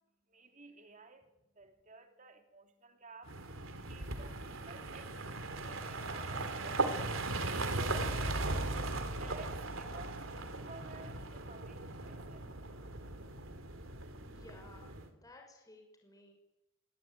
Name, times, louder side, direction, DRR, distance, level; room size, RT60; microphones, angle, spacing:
voice 1, 0.3-3.4 3.7-5.2 5.5-8.5 9.2-12.5, right 3 dB, 40° right, 3.5 m, -54 dB
sound 1, 3.3-15.1, right 2 dB, 80° right, 3.4 m, -38 dB
voice 2, 14.3-16.3, left 2 dB, 20° left, 6.3 m, -57 dB
24.5 x 22.5 x 9.5 m
head